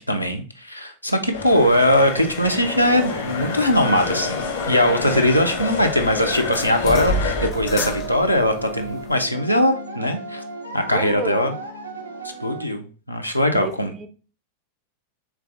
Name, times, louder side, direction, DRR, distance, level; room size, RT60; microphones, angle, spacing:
voice 1, 0.0-10.4 10.7-11.5 12.4-13.9, left 1 dB, 90° left, 0.5 m, -20 dB
sound 1, 1.3-7.5, left 5 dB, 65° left, 0.9 m, -29 dB
sound 2, 1.5-9.2, left 1 dB, 35° left, 0.5 m, -33 dB
sound 3, 2.4-12.7, right 2 dB, 85° right, 0.7 m, -35 dB
voice 2, 5.1-5.4 10.9-11.6 13.5-14.1, right 6 dB, 25° right, 0.5 m, -31 dB
4.6 x 3.3 x 2.4 m
figure-of-eight pair, 90°, 0 cm